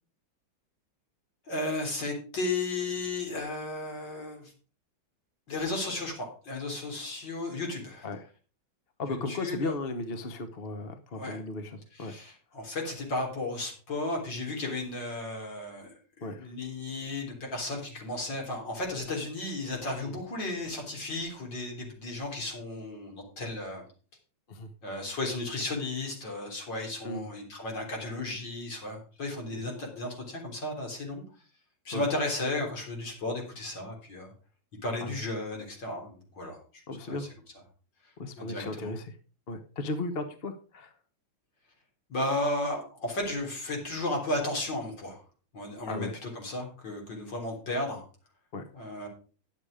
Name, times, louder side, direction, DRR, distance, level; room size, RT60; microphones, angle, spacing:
voice 1, 1.5-4.5 5.5-8.1 9.1-9.7 11.1-11.4 11.9-23.8 24.8-31.2 31.9-34.3 34.8-36.8 37.1-37.3 38.4-39.0 42.1-45.2 45.5-48.0 48.7-49.1, left 2 dB, 60° left, 0 dB, 4.2 m, -34 dB
voice 2, 9.0-12.1 16.2-16.5 19.9-20.1 24.5-24.7 27.0-27.3 31.9-32.0 35.0-35.2 36.9-37.3 38.2-39.1 39.5-40.9 45.9-46.1 48.5-48.7, left 2 dB, 40° left, 8 dB, 1.0 m, -36 dB
10.5 x 8.0 x 4.9 m, 0.38 s
omnidirectional pair, 2.2 m